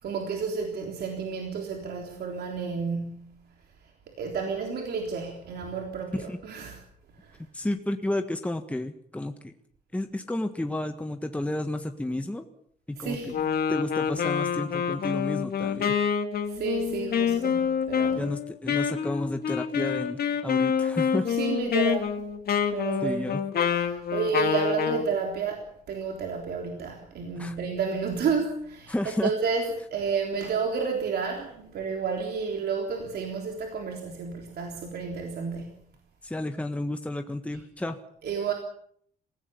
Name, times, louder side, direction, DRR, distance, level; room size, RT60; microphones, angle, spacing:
voice 1, 0.0-3.4 4.2-6.8 7.2-7.4 13.0-13.6 16.5-18.3 21.3-22.2 22.7-23.3 23.7-28.9 29.2-35.8 38.2-38.5, right 5 dB, 85° right, 2 dB, 3.6 m, -31 dB
voice 2, 7.5-9.5 9.9-12.4 12.9-13.2 13.7-16.0 18.1-21.3 23.0-23.4 27.4-27.5 28.9-29.3 36.2-38.0, left 1 dB, 10° left, 6 dB, 1.5 m, -31 dB
Wind instrument woodwind instrument, 13.3-25.1, left 7 dB, 75° left, 2.4 m, -27 dB
27.0 x 16.5 x 7.1 m, 0.66 s
cardioid pair, 115°, 16 cm